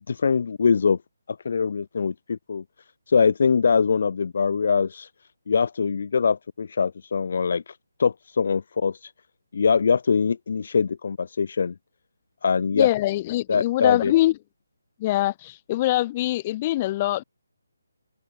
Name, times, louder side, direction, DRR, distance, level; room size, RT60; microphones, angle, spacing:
voice 1, 0.1-1.0 1.3-2.6 3.1-5.1 5.5-9.1 9.5-11.7 12.4-12.9 13.5-14.1, left 5 dB, 45° left, 0.4 m, -23 dB
voice 2, 12.7-14.3 15.0-17.2, left 16 dB, 25° left, 1.1 m, -23 dB
open air
figure-of-eight pair, 145°, 0 cm